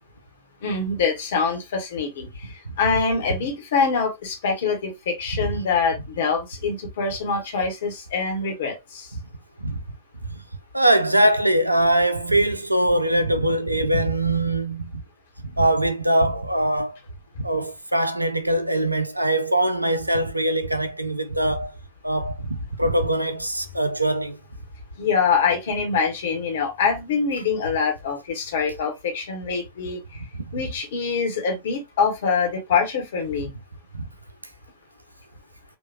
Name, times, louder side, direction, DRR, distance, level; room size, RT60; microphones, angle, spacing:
voice 1, 0.6-9.1 25.0-30.2 30.5-33.5, left 5 dB, 60° left, 1.3 m, -24 dB
voice 2, 5.3-5.6 9.1-9.2 9.6-9.8 10.3-10.4 10.7-14.9 15.6-17.0 17.4-21.7 22.0-24.4 33.3-33.4 33.9-34.1, right 1 dB, 85° right, 0.5 m, -22 dB
4.6 x 2.5 x 2.7 m
figure-of-eight pair, 90°, 0 cm